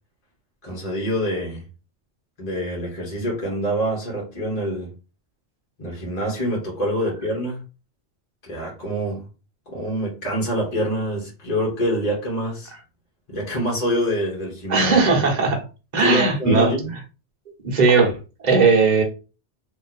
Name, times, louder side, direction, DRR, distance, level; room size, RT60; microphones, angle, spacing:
voice 1, 0.6-1.6 2.4-4.9 5.8-7.6 8.4-9.3 9.7-12.7 13.3-15.0 16.0-17.0, equal, 35° left, -3 dB, 1.3 m, -26 dB
voice 2, 14.7-15.6 15.9-16.7 17.6-19.0, right 4 dB, 40° right, 1 dB, 1.1 m, -18 dB
3.0 x 2.8 x 4.1 m, 0.31 s
omnidirectional pair, 1.2 m